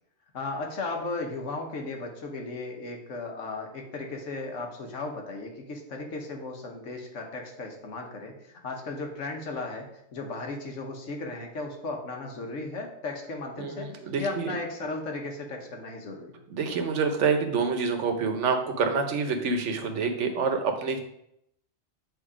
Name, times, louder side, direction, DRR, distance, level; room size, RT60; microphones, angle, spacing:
voice 1, 0.3-16.8, left 3 dB, 70° left, 2 dB, 1.4 m, -36 dB
voice 2, 13.6-14.6 16.5-21.0, right 5 dB, 70° right, 5 dB, 1.1 m, -27 dB
8.0 x 2.9 x 4.9 m, 0.77 s
omnidirectional pair, 1.3 m